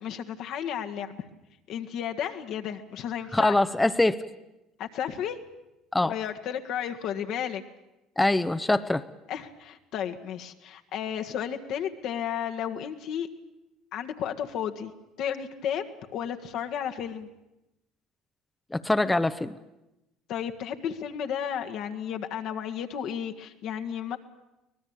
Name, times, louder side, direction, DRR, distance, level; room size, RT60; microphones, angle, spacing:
voice 1, 0.0-1.2 1.7-3.5 4.8-5.4 6.0-7.6 9.3-13.3 13.9-14.9 15.2-17.3 20.3-24.2, left 9 dB, 60° left, 6 dB, 1.6 m, -33 dB
voice 2, 3.3-4.2 5.9-6.1 8.2-9.0 18.7-19.6, left 2 dB, 10° left, 10 dB, 0.9 m, -23 dB
24.0 x 19.0 x 8.8 m, 0.95 s
hypercardioid pair, 65°, 0 cm